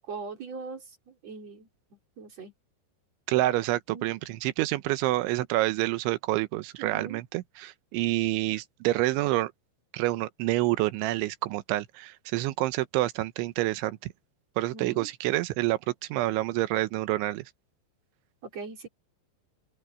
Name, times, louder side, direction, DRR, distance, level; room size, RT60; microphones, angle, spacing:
voice 1, 0.0-2.5 3.9-4.1 6.8-7.2 14.7-15.1 18.4-18.9, right 4 dB, 35° right, 5.0 m, -41 dB
voice 2, 3.3-9.5 9.9-14.1 14.6-15.8 16.1-17.5, right 17 dB, 85° right, 3.3 m, -28 dB
open air
omnidirectional pair, 5.3 m